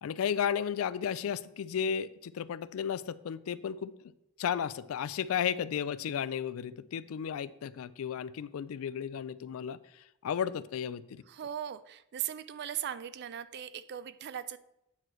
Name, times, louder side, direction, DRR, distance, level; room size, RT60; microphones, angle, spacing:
voice 1, 0.0-3.9 4.4-9.8 10.2-11.2, left 8 dB, 70° left, 17 dB, 0.3 m, -33 dB
voice 2, 11.3-14.6, right 10 dB, 50° right, 14 dB, 0.4 m, -38 dB
8.8 x 3.1 x 6.1 m, 0.87 s
head